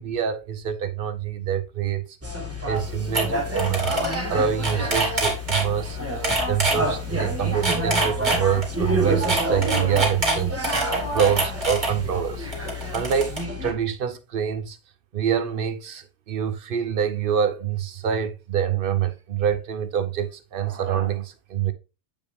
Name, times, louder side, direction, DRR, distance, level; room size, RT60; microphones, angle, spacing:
voice 1, 0.0-2.1 2.6-4.0 4.3-6.0 6.5-10.8 11.1-12.5 12.9-13.3 13.6-14.8 15.1-21.7, right 8 dB, 55° right, 0.7 m, -25 dB
sound 1, 2.2-13.7, equal, 10° right, 1.1 m, -29 dB
sound 2, 2.8-2.9 3.1-3.2 3.5-4.2 4.5-5.6 6.2-6.8 7.4-8.7 9.2-11.9 12.5-13.4, right 2 dB, 35° right, 2.5 m, -24 dB
7.9 x 5.1 x 3.4 m
omnidirectional pair, 1.4 m